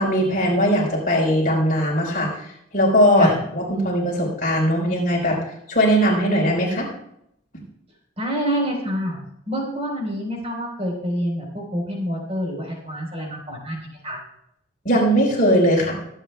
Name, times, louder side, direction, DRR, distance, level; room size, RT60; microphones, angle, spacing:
voice 1, 0.0-2.3 2.7-5.4 5.7-6.9 14.8-16.0, equal, 40° left, -2 dB, 4.5 m, -19 dB
voice 2, 8.2-9.2 9.5-14.2, equal, 30° right, -1 dB, 4.3 m, -27 dB
24.0 x 9.0 x 2.3 m, 0.75 s
head